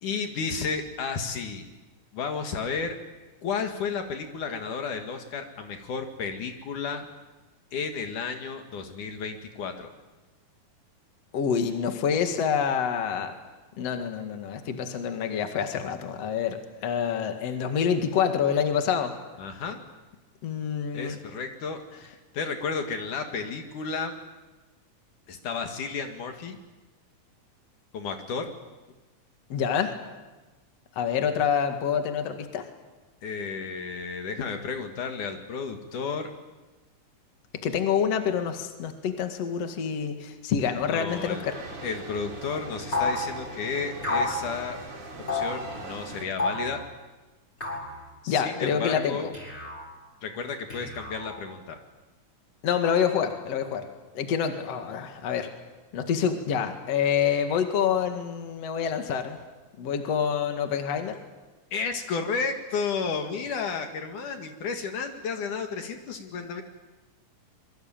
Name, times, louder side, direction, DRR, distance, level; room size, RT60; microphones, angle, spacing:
voice 1, 0.0-1.7 2.1-3.0 3.4-7.1 7.7-9.9 19.4-19.8 20.9-24.2 25.3-26.6 27.9-28.5 33.2-36.3 40.9-41.4 41.8-44.8 45.3-46.8 48.2-49.3 50.2-51.8 61.7-66.6, left 5 dB, 70° left, 5 dB, 3.4 m, -32 dB
voice 2, 11.3-13.3 13.7-19.1 20.4-21.2 29.5-29.9 31.0-32.7 37.6-41.5 48.3-49.3 52.6-53.9 54.1-55.5 55.9-59.4 59.8-61.2, left 7 dB, 50° left, 6 dB, 2.9 m, -27 dB
sound 1, 41.1-46.2, right 2 dB, 40° right, 5.4 m, -41 dB
sound 2, 42.9-43.2 44.0-44.4 45.3-45.6 46.4-46.7 47.6-47.9 49.3-49.8 50.7-51.4, left 2 dB, 20° left, 7.3 m, -29 dB
26.0 x 23.5 x 9.0 m, 1.2 s
omnidirectional pair, 3.8 m